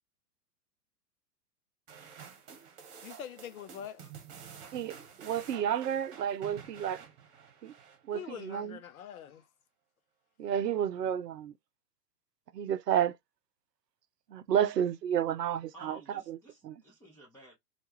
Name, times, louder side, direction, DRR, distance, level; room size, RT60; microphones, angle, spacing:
sound 1, 1.9-8.4, right 7 dB, 45° right, 1.1 m, -50 dB
voice 1, 3.0-4.1 8.1-9.5, left 9 dB, 60° left, 0.6 m, -44 dB
voice 2, 4.7-7.0 7.6-7.7 8.1-8.8 10.4-11.5 12.5-13.1 14.3-16.0 16.3-16.4 16.6-16.8, right 9 dB, 75° right, 0.6 m, -31 dB
voice 3, 15.7-17.5, equal, 5° left, 0.6 m, -53 dB
2.4 x 2.2 x 2.9 m
figure-of-eight pair, 110°, 49 cm